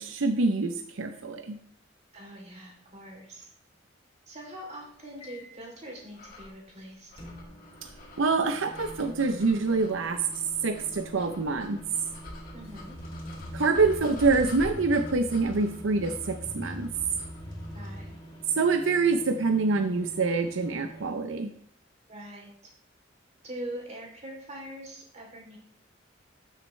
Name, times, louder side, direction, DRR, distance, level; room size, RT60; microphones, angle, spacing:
voice 1, 0.0-1.6 7.8-7.9 8.2-10.3 10.6-11.8 13.5-16.9 18.6-21.5, right 3 dB, 85° right, 7 dB, 0.6 m, -26 dB
voice 2, 2.1-3.5 4.3-7.1 12.5-12.9 17.7-18.1 22.1-22.7 23.4-25.6, right 1 dB, 35° right, -1 dB, 3.1 m, -43 dB
sound 1, 5.2-5.6 7.2-21.1, right 1 dB, 30° left, 2.4 m, -47 dB
sound 2, 6.1-18.0, left 1 dB, 50° left, 2.0 m, -47 dB
sound 3, 12.5-18.5, left 1 dB, 80° left, 2.7 m, -42 dB
12.5 x 6.6 x 3.2 m, 0.63 s
head